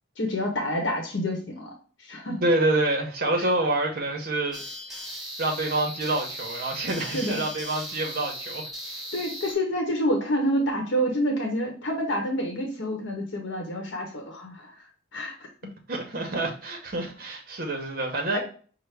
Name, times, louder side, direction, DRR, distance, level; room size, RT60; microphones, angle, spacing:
voice 1, 0.2-1.7 2.0-2.4 3.4-3.5 7.1-7.4 9.1-15.4 18.3-18.4, equal, 75° left, 0.9 m, -28 dB
voice 2, 2.4-4.6 4.9-5.0 5.4-9.0 15.9-18.4, right 2 dB, 50° right, 0.8 m, -27 dB
sound 1, 4.5-9.5, equal, ahead, 1.1 m, -37 dB
5.7 x 2.1 x 3.3 m
head